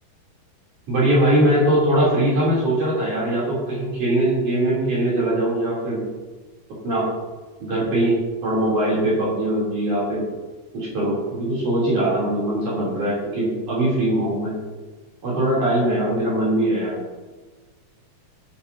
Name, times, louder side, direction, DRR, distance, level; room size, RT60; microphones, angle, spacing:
voice 1, 0.9-6.0 6.8-7.1 7.6-8.2 8.4-10.2 10.7-14.6 15.2-17.0, right 1 dB, 50° right, -7 dB, 4.6 m, -21 dB
19.0 x 10.0 x 2.8 m, 1.3 s
omnidirectional pair, 4.7 m